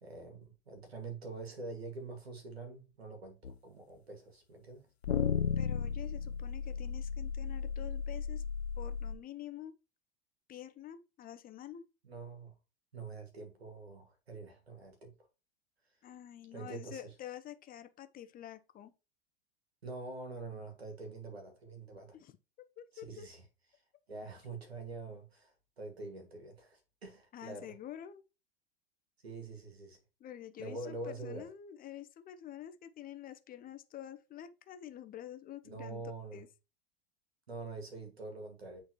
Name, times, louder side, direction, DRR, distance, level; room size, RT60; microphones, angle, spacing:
voice 1, 0.0-4.9 12.0-12.5 12.9-15.1 16.5-17.0 19.8-22.2 22.9-23.4 24.1-27.7 29.2-30.0 30.6-31.4 35.6-36.4 37.5-38.8, right 3 dB, 85° right, 2.1 m, -45 dB
sound 1, 3.4-3.6 5.0-9.2, left 6 dB, 90° left, 0.5 m, -34 dB
voice 2, 5.6-8.4 8.8-9.8 10.5-11.8 16.0-18.9 22.1-22.4 22.8-23.3 27.3-28.2 30.2-36.5, left 11 dB, 30° left, 0.7 m, -48 dB
8.8 x 3.9 x 3.0 m
figure-of-eight pair, 85°, 31 cm